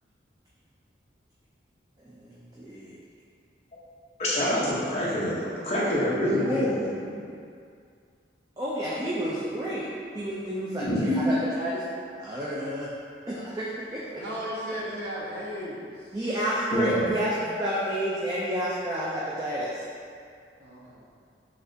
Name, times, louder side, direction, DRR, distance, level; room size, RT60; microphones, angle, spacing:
voice 1, 2.0-3.0 6.4-6.8 8.6-9.9 10.1-11.8 12.2-12.9 13.3-14.2 16.1-19.8, equal, 20° right, -7 dB, 0.4 m, -30 dB
voice 2, 4.2-7.1 10.9-11.3 16.7-17.1, equal, 35° left, -8 dB, 1.0 m, -26 dB
voice 3, 14.2-16.2 20.6-21.0, equal, 70° right, -6 dB, 1.0 m, -35 dB
5.8 x 3.3 x 2.7 m, 2.3 s
head